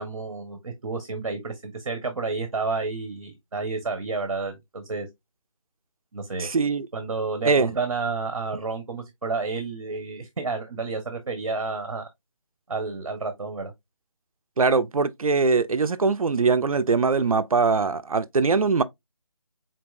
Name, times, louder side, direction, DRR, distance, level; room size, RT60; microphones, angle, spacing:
voice 1, 0.0-5.1 6.1-6.5 6.9-12.1 12.7-13.7, right 4 dB, 60° right, 1.1 m, -30 dB
voice 2, 6.4-6.9 7.4-7.7 14.6-18.8, right 4 dB, 85° right, 0.6 m, -22 dB
4.5 x 3.9 x 2.4 m
figure-of-eight pair, 165°, 18 cm